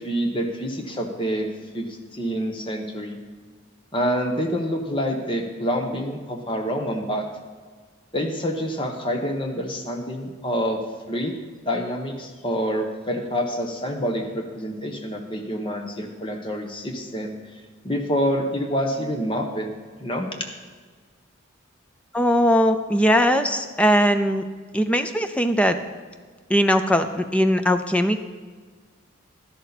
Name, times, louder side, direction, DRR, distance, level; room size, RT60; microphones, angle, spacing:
voice 1, 0.0-1.5 1.7-1.8 2.1-3.2 3.9-7.2 8.1-10.8 11.1-11.3 11.6-17.3 17.8-19.7 20.0-20.3, equal, 25° left, 3 dB, 1.3 m, -27 dB
voice 2, 22.1-24.4 24.7-25.8 26.5-28.2, equal, 5° left, 8 dB, 0.5 m, -20 dB
12.5 x 11.0 x 4.2 m, 1.5 s
head